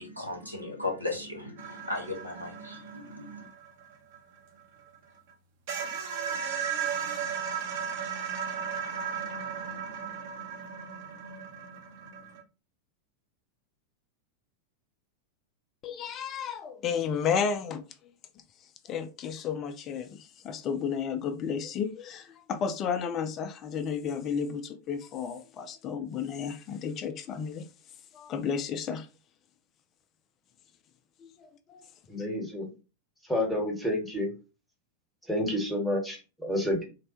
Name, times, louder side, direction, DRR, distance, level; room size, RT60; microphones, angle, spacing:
voice 1, 0.0-3.5, left 2 dB, 90° right, 0.9 m, -36 dB
sound 1, 1.6-5.0 5.3-5.4 5.7-12.4, right 7 dB, 50° right, 0.7 m, -36 dB
voice 2, 15.8-17.8 18.9-27.7 28.1-29.1 31.2-31.9, left 7 dB, 30° left, 0.3 m, -32 dB
voice 3, 32.1-32.7 33.3-34.3 35.3-36.8, left 1 dB, 5° left, 1.0 m, -29 dB
3.2 x 2.1 x 2.7 m
figure-of-eight pair, 90°, 0 cm